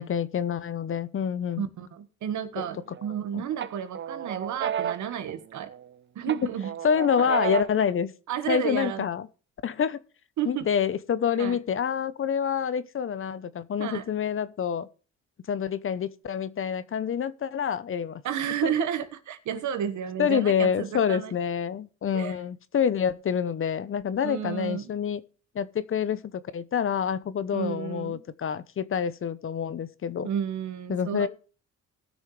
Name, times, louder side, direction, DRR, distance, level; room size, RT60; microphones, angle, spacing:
voice 1, 0.0-1.6 3.3-3.4 6.8-8.1 8.5-9.2 9.6-10.0 10.5-14.9 15.5-18.2 20.2-25.2 25.5-30.3 30.9-31.3, left 7 dB, 45° left, 0.8 m, -27 dB
voice 2, 1.6-5.7 6.1-6.7 7.2-7.3 8.3-9.1 10.4-10.7 11.4-11.6 13.8-14.1 18.2-21.3 22.1-22.4 24.2-24.9 27.5-28.2 30.2-31.3, right 9 dB, 75° right, 1.5 m, -31 dB
sound 1, 2.6-3.2 3.6-5.9 6.3-7.9, right 9 dB, 40° right, 0.6 m, -33 dB
18.5 x 6.3 x 3.2 m
cardioid pair, 90°, 30 cm